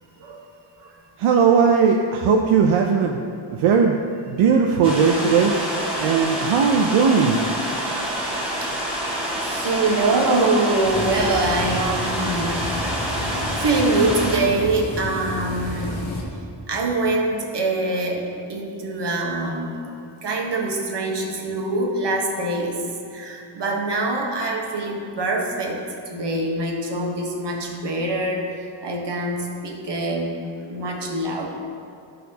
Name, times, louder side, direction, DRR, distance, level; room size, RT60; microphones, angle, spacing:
voice 1, 1.2-3.2 3.6-4.0 4.3-5.5 6.0-7.4, right 6 dB, 80° right, 2 dB, 0.6 m, -18 dB
sound 1, 4.8-14.4, right 1 dB, 10° right, 1.7 m, -27 dB
voice 2, 9.4-12.9 13.6-16.0 16.7-22.8 23.1-25.8 26.1-28.5 28.8-30.3 30.6-31.5, right 2 dB, 55° right, 0 dB, 1.2 m, -24 dB
sound 2, 10.8-16.2, left 1 dB, 65° left, 1.2 m, -31 dB
12.5 x 4.1 x 2.8 m, 2.4 s
wide cardioid pair, 85°, 49 cm